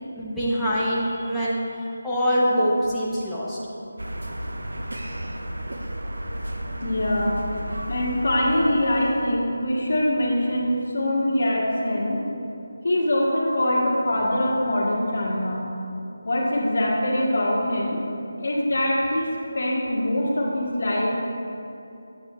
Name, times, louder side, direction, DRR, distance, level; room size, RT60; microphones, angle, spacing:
voice 1, 0.2-1.6 2.0-3.6, equal, ahead, -12 dB, 0.8 m, -24 dB
sound 1, 4.0-9.3, equal, 80° right, 0.7 m, -33 dB
voice 2, 6.8-7.4 7.9-12.2 12.8-15.6 16.2-18.0 18.4-19.3 19.5-21.2, left 1 dB, 65° left, -4 dB, 1.7 m, -23 dB
8.8 x 7.7 x 3.0 m, 2.8 s
figure-of-eight pair, 160°, 0 cm